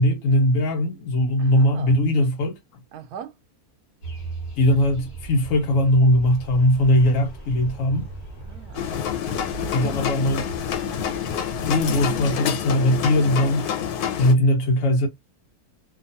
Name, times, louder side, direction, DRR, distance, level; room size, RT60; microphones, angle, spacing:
voice 1, 0.0-2.6 4.6-8.1 9.7-10.5 11.7-13.6 14.2-15.1, left 1 dB, 65° left, 1.0 m, -20 dB
voice 2, 1.4-1.9 2.9-3.4 8.4-9.0 9.4-9.5 9.8-9.9 10.8-11.2, right 8 dB, 85° right, 1.1 m, -41 dB
sound 1, 4.0-12.4, right 2 dB, 40° left, 1.1 m, -39 dB
sound 2, 6.2-12.1, equal, 20° left, 1.0 m, -46 dB
sound 3, 8.7-14.3, left 9 dB, 90° left, 1.2 m, -27 dB
2.8 x 2.3 x 2.6 m
omnidirectional pair, 1.6 m